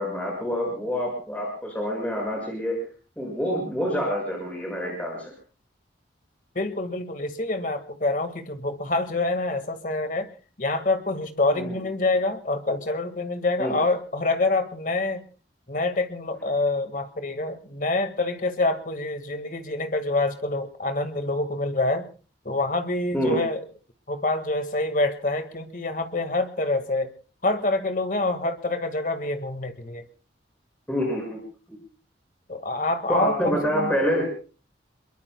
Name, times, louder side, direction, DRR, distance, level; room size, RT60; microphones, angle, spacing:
voice 1, 0.0-2.8 3.2-5.3 11.5-11.8 13.6-13.7 23.1-23.4 30.9-31.4 31.7-31.8 33.1-34.3, equal, 10° left, 0 dB, 5.8 m, -27 dB
voice 2, 6.5-10.3 10.6-15.2 15.7-22.1 22.4-23.6 24.1-27.1 27.4-30.1 32.5-33.9, left 2 dB, 45° left, 9 dB, 1.7 m, -26 dB
27.5 x 22.5 x 2.2 m, 0.35 s
head